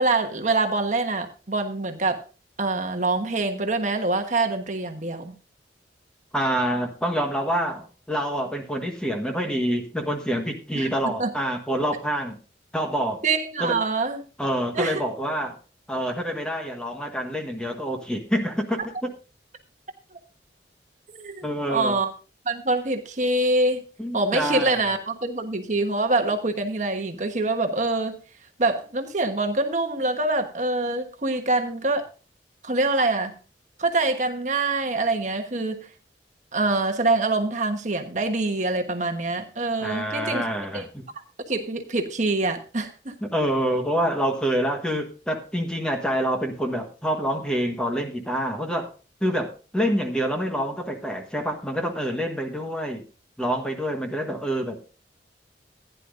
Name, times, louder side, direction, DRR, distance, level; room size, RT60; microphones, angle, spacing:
voice 1, 0.0-2.2 2.6-5.3 10.7-10.9 11.2-11.3 13.2-14.2 14.7-15.0 21.1-22.1 22.4-23.8 24.1-28.2 28.6-32.1 32.6-33.3 33.8-35.8 36.5-40.4 40.7-40.8 41.5-43.1, right 2 dB, 45° right, 5 dB, 1.2 m, -25 dB
voice 2, 6.3-12.4 12.7-13.2 13.6-13.8 14.4-15.6 15.9-19.1 21.4-21.9 24.0-24.8 39.8-41.0 43.2-48.9 49.2-53.0 53.4-54.9, equal, 5° left, 3 dB, 1.4 m, -27 dB
15.5 x 10.0 x 2.6 m, 0.34 s
head